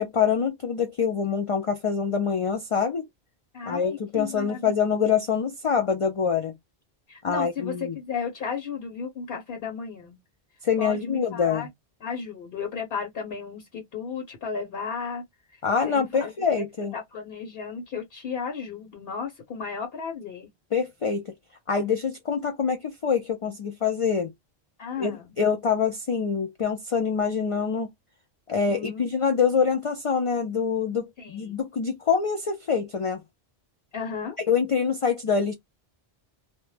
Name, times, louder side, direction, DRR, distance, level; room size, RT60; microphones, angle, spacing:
voice 1, 0.0-3.1 3.7-6.5 7.2-8.0 10.6-11.7 15.6-16.9 20.7-21.2 21.7-24.3 25.0-27.9 28.5-33.2 34.5-35.5, left 6 dB, 50° left, 0.4 m, -25 dB
voice 2, 3.5-4.7 7.1-10.2 10.8-11.7 12.0-15.2 15.5-15.6 15.9-16.3 16.6-16.7 16.9-20.5 24.8-25.3 28.7-29.1 31.2-31.5 33.9-34.4, left 6 dB, 65° left, 0.9 m, -34 dB
2.1 x 2.0 x 3.1 m
omnidirectional pair, 1.1 m